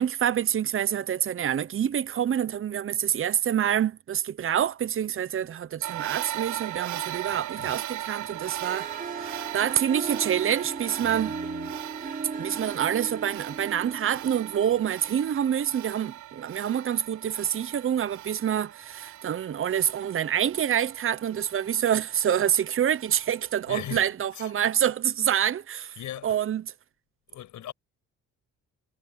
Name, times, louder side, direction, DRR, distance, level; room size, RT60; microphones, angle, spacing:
voice 1, 0.0-11.3 12.4-26.0 26.2-26.6, right 9 dB, 45° right, 0.9 m, -27 dB
sound 1, 5.8-24.0, right 13 dB, 70° right, 0.9 m, -39 dB
voice 2, 7.3-7.7 11.0-11.8 23.7-24.1 24.3-24.5 26.0-26.4 27.3-27.7, left 12 dB, 80° left, 6.5 m, -40 dB
Harp, 8.3-15.4, right 4 dB, 30° right, 6.2 m, -38 dB
cardioid pair, 90°, 30 cm